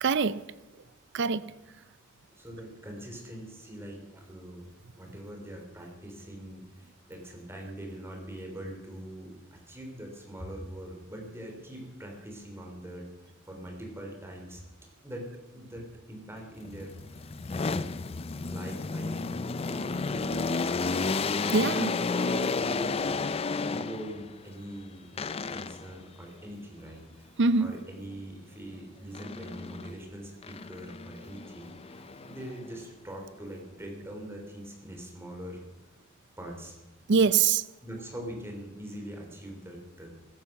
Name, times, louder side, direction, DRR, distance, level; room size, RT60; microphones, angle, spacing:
voice 1, 0.0-0.4 1.1-1.5 21.5-21.9 27.4-27.8 37.1-37.6, right 5 dB, 55° right, 15 dB, 0.6 m, -24 dB
voice 2, 2.3-4.7 5.0-14.6 15.0-15.3 15.5-16.9 17.5-18.0 18.5-21.0 21.8-23.2 23.5-25.1 25.5-27.3 27.6-35.6 36.4-36.8 37.8-40.1, right 1 dB, 10° right, 2 dB, 3.4 m, -43 dB
sound 1, 16.6-24.3 25.2-26.0 29.1-30.0 30.4-32.8, left 4 dB, 25° left, 0.4 m, -32 dB
15.5 x 14.5 x 5.9 m, 1.1 s
head